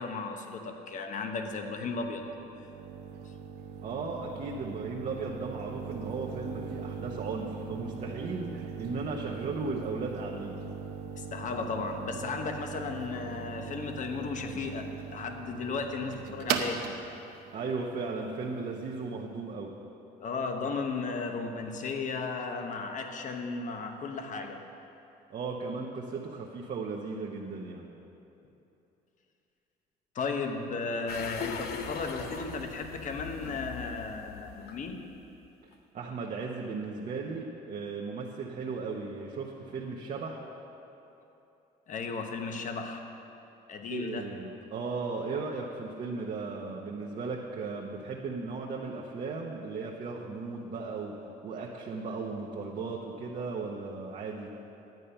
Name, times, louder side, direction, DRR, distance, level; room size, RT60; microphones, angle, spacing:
voice 1, 0.0-2.2 11.2-16.9 20.2-24.6 30.1-35.1 41.9-43.1 43.7-44.3, left 4 dB, 50° left, 5 dB, 1.0 m, -35 dB
sound 1, 1.4-19.0, right 6 dB, 85° right, 0.7 m, -40 dB
voice 2, 3.8-10.6 17.5-19.7 25.3-27.8 35.9-40.4 43.9-51.2 51.4-54.5, right 4 dB, 50° right, -2 dB, 1.0 m, -36 dB
sound 2, 31.1-35.3 35.7-35.8, left 6 dB, 70° left, 0.8 m, -40 dB
10.5 x 8.2 x 5.7 m, 2.9 s
cardioid pair, 110°, 17 cm